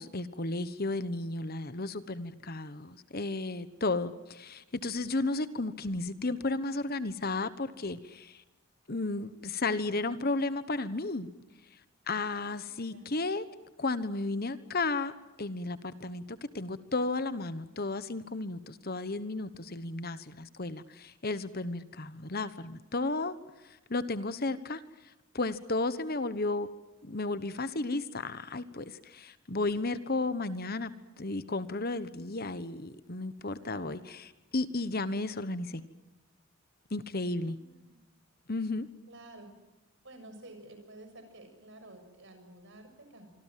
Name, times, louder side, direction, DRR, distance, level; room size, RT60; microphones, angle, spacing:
voice 1, 0.0-8.4 8.9-11.3 12.1-13.4 13.8-15.1 15.4-23.4 23.9-24.8 25.3-26.7 27.0-30.9 31.2-35.8 36.9-37.6 38.5-38.9, left 2 dB, 40° left, 1.2 m, -33 dB
voice 2, 12.2-13.1 30.5-30.8 33.6-33.9 37.4-38.0 39.1-39.6 40.0-43.3, right 1 dB, 55° right, 6.9 m, -52 dB
25.5 x 25.5 x 7.6 m
head